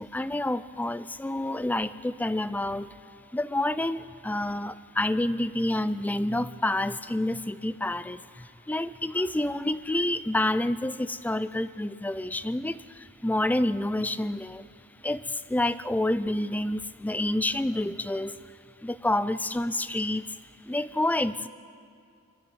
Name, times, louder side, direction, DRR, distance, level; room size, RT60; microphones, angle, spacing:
voice 1, 0.0-2.9 3.3-14.7 15.0-18.4 18.8-20.3 20.7-21.5, left 1 dB, 5° left, 14 dB, 0.4 m, -28 dB
24.0 x 12.5 x 9.2 m, 2.3 s
head